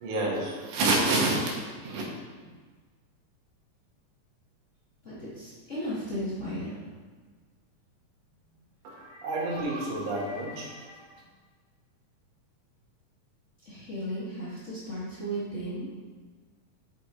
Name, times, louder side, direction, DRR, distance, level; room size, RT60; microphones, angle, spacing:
voice 1, 0.0-2.0 8.8-11.2, right 2 dB, 85° right, -2 dB, 2.6 m, -29 dB
voice 2, 5.0-6.8 13.6-15.9, equal, 80° left, -9 dB, 0.6 m, -35 dB
6.2 x 5.1 x 4.1 m, 1.5 s
omnidirectional pair, 3.4 m